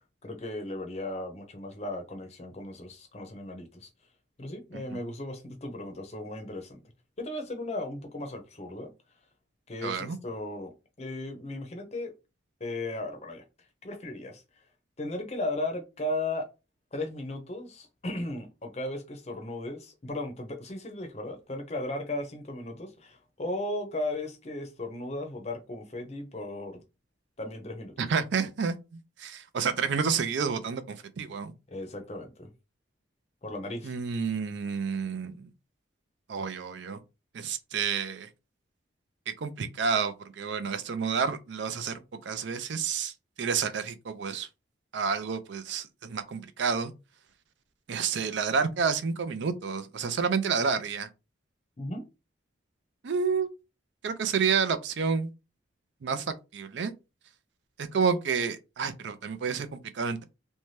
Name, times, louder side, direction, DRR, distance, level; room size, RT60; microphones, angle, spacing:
voice 1, 0.2-3.9 4.4-6.8 7.2-8.9 9.7-12.1 12.6-13.4 13.8-14.4 15.0-16.5 16.9-26.8 27.4-28.1 31.7-32.5 33.4-33.9 51.8-52.0, left 1 dB, 35° left, 0.6 m, -36 dB
voice 2, 9.8-10.2 28.0-31.5 33.8-35.5 36.3-37.0 37.3-38.3 39.3-44.5 44.9-46.9 47.9-51.1 53.0-53.5 54.0-55.3 56.0-56.9 57.8-60.2, right 6 dB, 70° right, 0.4 m, -30 dB
2.7 x 2.2 x 3.1 m
head